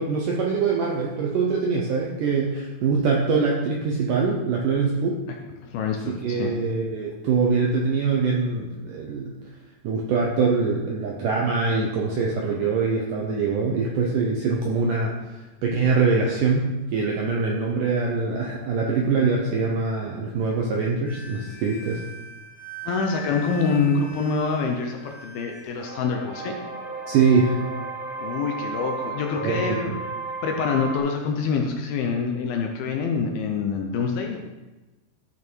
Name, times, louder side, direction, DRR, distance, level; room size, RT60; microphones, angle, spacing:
voice 1, 0.0-5.2 6.1-9.3 9.8-15.1 15.6-22.0 27.1-27.6 29.4-29.8, right 4 dB, 75° right, -2 dB, 1.9 m, -23 dB
voice 2, 5.6-6.6 22.8-26.6 28.2-30.0 30.4-34.4, left 5 dB, 75° left, 2 dB, 2.3 m, -26 dB
sound 1, 21.0-31.0, right 3 dB, ahead, 2.4 m, -36 dB
13.0 x 5.7 x 4.6 m, 1.1 s
omnidirectional pair, 4.9 m